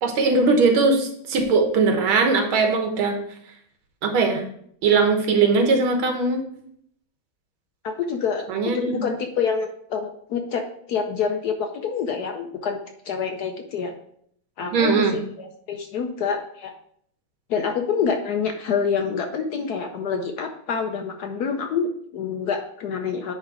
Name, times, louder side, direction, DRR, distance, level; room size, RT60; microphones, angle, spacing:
voice 1, 0.0-3.2 4.0-4.4 4.8-6.4 8.5-9.0 14.7-15.2, right 4 dB, 85° right, 4 dB, 2.0 m, -20 dB
voice 2, 7.8-8.5 8.7-12.8 13.0-13.9 14.6-16.7 17.5-23.3, left 6 dB, 65° left, 5 dB, 1.0 m, -27 dB
9.6 x 3.3 x 4.8 m, 0.66 s
omnidirectional pair, 2.2 m